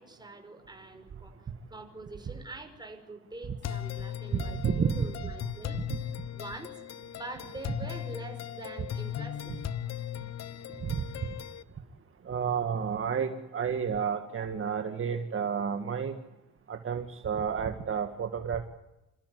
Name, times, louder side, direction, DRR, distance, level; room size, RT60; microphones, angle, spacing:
voice 1, 0.0-5.8 6.3-6.8 7.1-9.6 10.7-10.8, right 2 dB, 15° right, 5 dB, 5.7 m, -45 dB
sound 1, 3.6-11.6, left 10 dB, 60° left, 1.1 m, -38 dB
voice 2, 4.3-5.1 10.8-11.0 12.3-16.2 16.7-18.7, right 6 dB, 45° right, 6 dB, 1.9 m, -30 dB
28.0 x 14.5 x 9.5 m, 0.97 s
cardioid pair, 90°, 30 cm